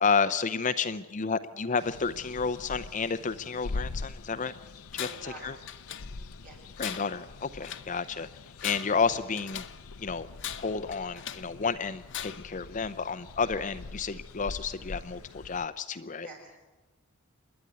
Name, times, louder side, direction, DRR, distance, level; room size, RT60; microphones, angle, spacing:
voice 1, 0.0-4.5 4.9-5.6 6.8-8.3 8.6-9.6 10.0-10.3 10.6-16.3, left 5 dB, 35° left, 12 dB, 0.6 m, -31 dB
sound 1, 1.8-15.6, left 3 dB, 85° left, 0.7 m, -43 dB
Tools, 4.9-5.4 5.7-6.4 6.8-7.9 8.5-9.8 10.4-11.5 12.1-12.6, left 10 dB, 55° left, 0.9 m, -40 dB
voice 2, 5.0-5.5 6.0-6.6 16.2-16.6, right 2 dB, 45° right, 0 dB, 7.3 m, -48 dB
27.5 x 10.5 x 9.6 m, 1.2 s
head